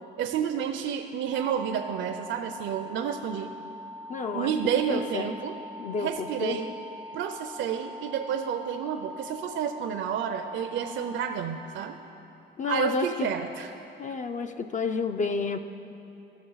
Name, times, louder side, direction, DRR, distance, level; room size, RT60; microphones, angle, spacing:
voice 1, 0.2-3.5 4.3-5.6 6.0-6.7 7.1-12.0 12.7-13.7, right 8 dB, 70° right, 6 dB, 0.5 m, -30 dB
sound 1, 1.3-11.3, left 2 dB, 55° left, 1.1 m, -42 dB
voice 2, 4.1-4.5 4.9-5.3 5.8-6.6 12.6-13.3 14.0-15.6, left 4 dB, 40° left, 7 dB, 0.4 m, -30 dB
15.5 x 6.3 x 3.9 m, 2.9 s
cardioid pair, 90°, 20 cm